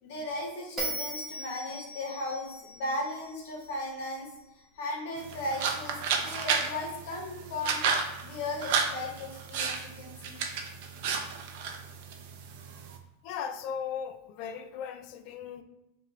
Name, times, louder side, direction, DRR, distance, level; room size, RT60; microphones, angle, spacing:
voice 1, 0.0-4.3 4.7-7.8 8.2-10.4, left 2 dB, 60° left, 1.2 m, -36 dB
Bell, 0.8-4.0, right 1 dB, 15° right, 1.2 m, -38 dB
sound 1, 5.2-13.0, right 6 dB, 55° right, 0.6 m, -33 dB
voice 2, 13.2-15.6, left 7 dB, 40° left, 0.3 m, -37 dB
5.6 x 2.5 x 3.1 m
supercardioid pair, 160°, 0 cm